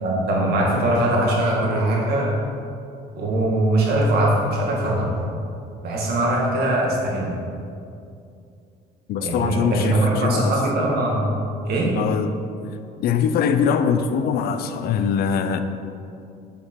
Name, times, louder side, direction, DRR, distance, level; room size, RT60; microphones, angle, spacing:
voice 1, 0.0-2.3 3.2-5.1 5.8-7.3 9.2-11.3 11.7-11.9, right 1 dB, 70° right, -2 dB, 2.0 m, -21 dB
voice 2, 9.1-10.6 12.0-12.3 13.0-15.6, left 7 dB, 65° left, 9 dB, 0.5 m, -22 dB
6.9 x 6.9 x 4.6 m, 2.5 s
cardioid pair, 110°, 17 cm